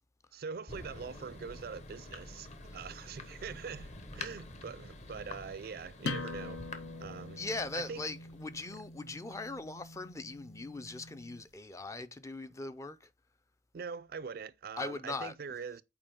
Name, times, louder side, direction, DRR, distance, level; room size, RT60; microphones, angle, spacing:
voice 1, 0.3-6.6 7.0-7.4 7.7-8.0 13.7-15.8, right 5 dB, 50° right, 0.4 m, -43 dB
Thunder, 0.7-9.0, left 2 dB, 35° left, 1.0 m, -48 dB
sound 1, 6.0-11.4, left 3 dB, 85° left, 1.1 m, -43 dB
voice 2, 7.4-13.1 14.8-15.3, left 3 dB, 15° left, 0.4 m, -40 dB
7.7 x 4.6 x 3.6 m
head